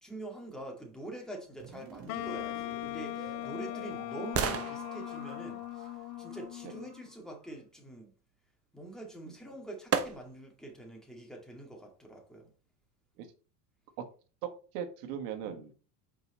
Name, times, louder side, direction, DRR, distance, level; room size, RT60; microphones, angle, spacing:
voice 1, 0.0-5.9 6.2-8.1 8.7-12.5, right 1 dB, ahead, 2.2 m, -45 dB
sound 1, 1.6-7.5, right 6 dB, 45° right, 1.5 m, -50 dB
Wind instrument woodwind instrument, 2.1-7.1, left 20 dB, 70° left, 0.5 m, -40 dB
sound 2, 3.0-6.9 9.0-9.1 9.9-10.6 11.1-11.2, right 7 dB, 30° right, 0.9 m, -37 dB
voice 2, 14.7-15.7, right 8 dB, 70° right, 1.5 m, -38 dB
5.4 x 4.8 x 4.1 m
supercardioid pair, 105°, 49 cm